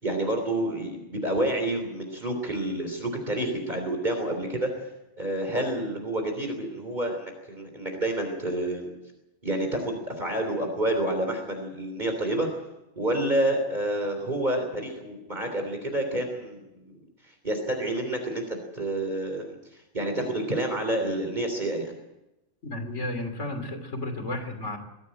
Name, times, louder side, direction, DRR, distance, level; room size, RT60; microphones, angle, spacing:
voice 1, 0.0-4.9 5.2-8.9 9.4-12.5 12.9-21.9, right 1 dB, 40° right, 4 dB, 3.5 m, -29 dB
voice 2, 22.6-24.8, left 1 dB, 70° left, 8 dB, 3.4 m, -33 dB
21.5 x 15.5 x 8.8 m, 0.94 s
omnidirectional pair, 1.3 m